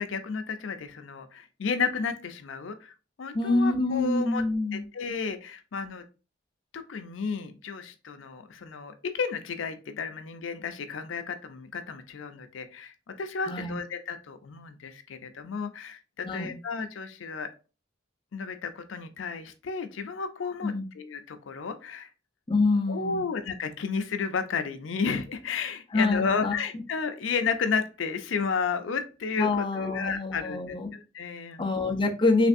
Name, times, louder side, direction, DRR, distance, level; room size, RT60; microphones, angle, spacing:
voice 1, 0.0-2.9 3.2-4.4 4.7-6.0 6.7-17.5 18.3-22.1 22.9-31.6, left 5 dB, 85° left, 8 dB, 0.5 m, -32 dB
voice 2, 3.3-4.8 13.5-13.8 16.2-16.6 20.6-20.9 22.5-23.2 25.9-26.5 29.4-30.9 31.6-32.5, left 3 dB, 25° left, 2 dB, 0.5 m, -26 dB
3.3 x 3.2 x 2.5 m, 0.32 s
head